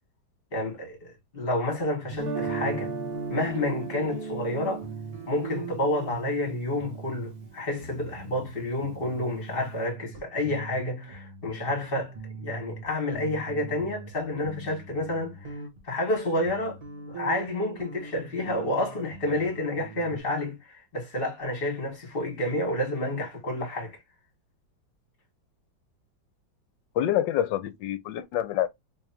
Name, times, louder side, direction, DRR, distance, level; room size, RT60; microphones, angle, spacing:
voice 1, 0.5-2.9 3.3-4.8 5.3-15.6 15.8-16.8 17.1-24.0, left 1 dB, 30° left, 2.1 m, -29 dB
sound 1, 2.0-2.2 2.4-12.8 13.1-20.2, right 5 dB, 25° right, 0.9 m, -42 dB
Guitar, 2.1-8.1, right 4 dB, 80° right, 1.9 m, -37 dB
voice 2, 27.0-28.7, left 11 dB, 75° left, 1.3 m, -26 dB
3.8 x 3.5 x 2.9 m
omnidirectional pair, 2.1 m